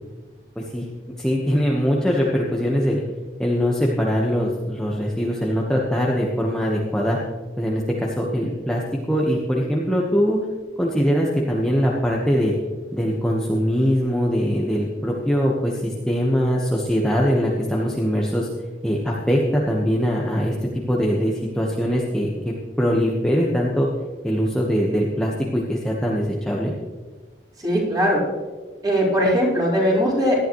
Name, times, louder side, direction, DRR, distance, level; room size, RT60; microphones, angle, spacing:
voice 1, 0.5-0.9 1.2-3.0 3.4-7.2 7.6-8.8 9.1-10.4 10.8-12.5 12.9-18.5 18.8-22.3 22.8-23.9 24.2-26.7, equal, 5° left, -4 dB, 1.2 m, -22 dB
voice 2, 27.6-28.2 28.8-30.4, equal, 20° right, -5 dB, 4.5 m, -19 dB
18.0 x 11.5 x 3.1 m, 1.3 s
head